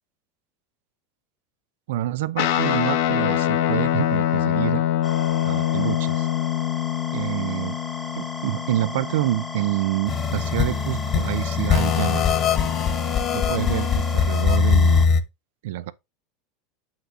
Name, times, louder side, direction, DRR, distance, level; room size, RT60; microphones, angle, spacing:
voice 1, 1.9-4.8 5.4-6.3 7.1-7.8 8.2-12.4 13.3-15.1 15.6-15.9, right 15 dB, 75° right, 0.7 m, -27 dB
Guitar, 2.4-10.0, left 12 dB, 70° left, 1.2 m, -24 dB
sound 1, 5.0-15.1, left 2 dB, 15° left, 1.0 m, -37 dB
sound 2, 10.1-15.2, left 6 dB, 45° left, 1.6 m, -21 dB
8.0 x 5.9 x 3.7 m
hypercardioid pair, 95°, 0 cm